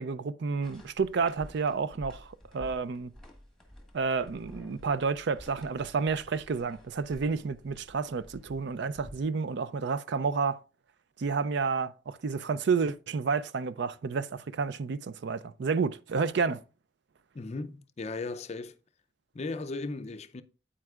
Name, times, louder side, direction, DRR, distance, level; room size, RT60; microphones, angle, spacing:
voice 1, 0.0-3.1 3.9-10.6 11.2-16.6, right 5 dB, 60° right, 0.4 m, -30 dB
sound 1, 0.6-9.2, equal, ahead, 1.4 m, -51 dB
voice 2, 17.3-18.8 19.3-20.4, left 3 dB, 35° left, 0.5 m, -36 dB
9.2 x 8.7 x 2.4 m
head